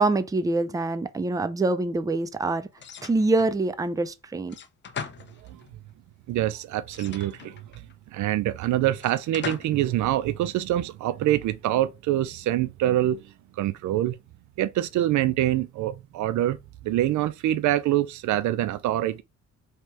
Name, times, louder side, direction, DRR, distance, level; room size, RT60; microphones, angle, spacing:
voice 1, 0.0-2.7 3.0-4.6, right 2 dB, 10° right, 0.4 m, -25 dB
sound 1, 2.8-3.6 4.5-5.8 6.9-7.9 9.0-9.9, left 7 dB, 40° left, 0.5 m, -39 dB
voice 2, 6.3-7.6 8.1-13.2 13.6-14.2 14.6-16.6 16.8-19.2, right 13 dB, 70° right, 0.4 m, -25 dB
3.1 x 2.9 x 4.5 m
cardioid pair, 90°, 30 cm